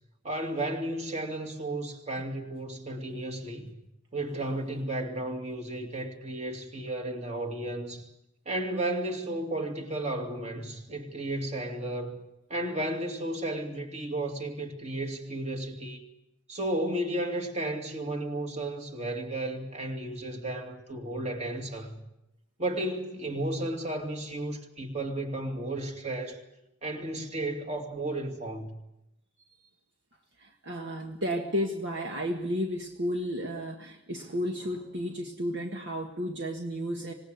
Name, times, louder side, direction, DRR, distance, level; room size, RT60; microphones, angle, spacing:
voice 1, 0.2-3.7 4.1-8.0 8.5-16.0 16.5-22.0 22.6-26.4 26.8-28.8, right 1 dB, 30° right, 2.7 m, -33 dB
voice 2, 30.4-37.1, equal, 55° right, 1.7 m, -32 dB
26.0 x 18.0 x 8.1 m
head